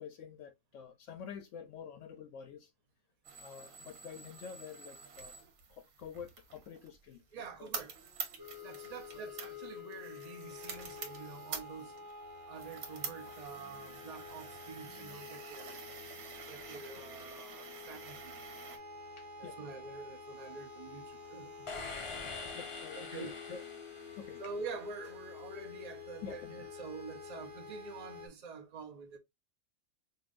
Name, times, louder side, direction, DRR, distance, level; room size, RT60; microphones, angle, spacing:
voice 1, 0.0-2.7 3.4-5.3 5.7-7.7 9.1-9.2 17.0-17.1 19.2-19.6 22.5-23.6 24.2-24.4 26.2-26.7, left 7 dB, 75° left, 0.9 m, -48 dB
sound 1, 3.2-18.8, right 6 dB, 85° right, 1.4 m, -48 dB
voice 2, 7.3-7.9 8.6-12.1 12.5-15.9 16.5-18.8 19.4-21.9 23.0-23.3 24.4-29.2, right 5 dB, 35° right, 0.8 m, -47 dB
sound 2, 8.4-28.3, left 5 dB, 60° right, 1.7 m, -49 dB
sound 3, 21.7-24.8, left 4 dB, 45° left, 0.4 m, -44 dB
5.5 x 2.4 x 2.5 m
omnidirectional pair, 1.4 m